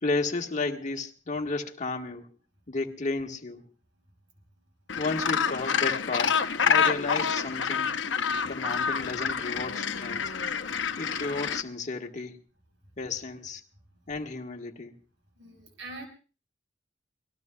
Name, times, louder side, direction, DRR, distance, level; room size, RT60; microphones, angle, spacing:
voice 1, 0.0-2.3 2.7-3.7 4.9-7.9 8.4-10.4 11.0-12.4 13.0-13.6 14.1-15.0, left 3 dB, 40° left, 3 dB, 1.5 m, -33 dB
Gull seagull, 4.9-11.6, left 6 dB, 80° left, 0.9 m, -28 dB
voice 2, 15.4-16.1, right 2 dB, 80° right, 4 dB, 5.4 m, -42 dB
27.5 x 19.5 x 2.3 m, 0.35 s
head